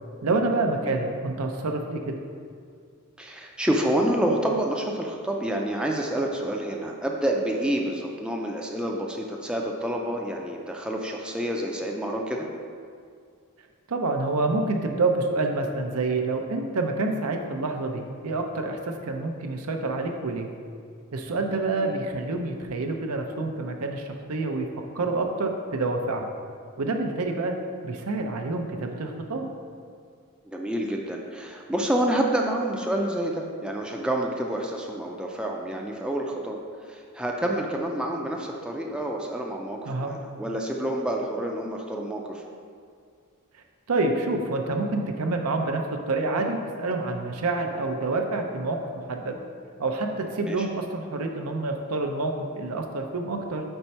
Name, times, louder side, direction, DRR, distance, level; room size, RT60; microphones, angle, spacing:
voice 1, 0.2-2.1 13.9-20.5 21.1-24.7 24.9-26.3 26.8-27.6 27.8-29.5 39.9-40.1 43.9-49.4 49.8-53.6, right 3 dB, 85° right, 4 dB, 0.6 m, -27 dB
voice 2, 3.2-12.5 21.8-22.0 30.5-36.6 36.8-42.4 50.5-50.7, right 1 dB, 5° right, 0 dB, 0.4 m, -28 dB
4.5 x 4.2 x 5.5 m, 2.2 s
head